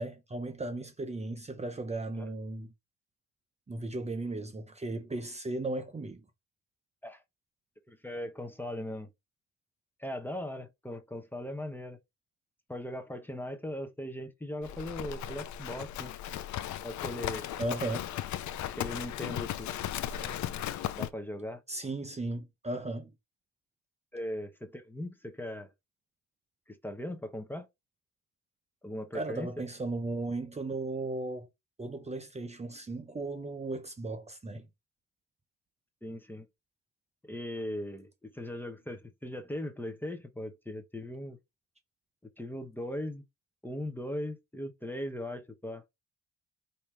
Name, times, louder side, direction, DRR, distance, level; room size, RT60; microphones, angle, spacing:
voice 1, 0.0-2.7 3.7-6.2 17.6-18.0 21.7-23.1 29.1-31.5 31.8-34.7, right 2 dB, 20° right, 0.8 m, -36 dB
voice 2, 7.9-9.1 10.0-12.0 12.7-16.1 16.8-17.5 18.7-19.7 20.1-20.4 20.9-21.6 24.1-25.7 26.7-27.7 28.8-29.5 36.0-36.5 37.2-41.4 42.4-43.2 43.6-45.8, left 1 dB, 5° left, 0.9 m, -39 dB
Livestock farm animals working animals, 14.6-21.1, left 11 dB, 70° left, 0.6 m, -36 dB
5.2 x 2.9 x 3.3 m
cardioid pair, 90°, 30 cm